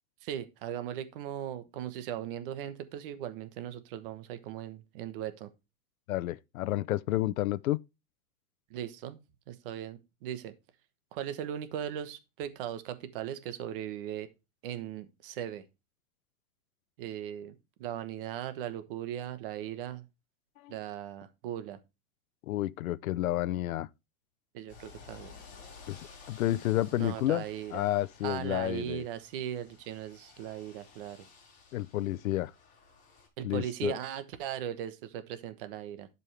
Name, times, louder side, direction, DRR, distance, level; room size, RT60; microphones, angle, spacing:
voice 1, 0.2-5.5 8.7-9.2 9.5-10.5 11.1-14.3 14.6-15.6 17.0-20.0 20.7-21.8 24.5-25.3 27.0-27.9 28.2-31.3 33.4-36.1, right 10 dB, 40° right, 1.1 m, -38 dB
voice 2, 6.1-7.8 20.6-20.7 22.4-23.9 25.9-27.4 27.7-29.0 31.7-32.5 33.4-33.9, left 15 dB, 75° left, 0.7 m, -30 dB
sound 1, 24.7-33.3, left 5 dB, 20° left, 3.9 m, -54 dB
11.5 x 5.5 x 3.3 m
supercardioid pair, 170°, 42 cm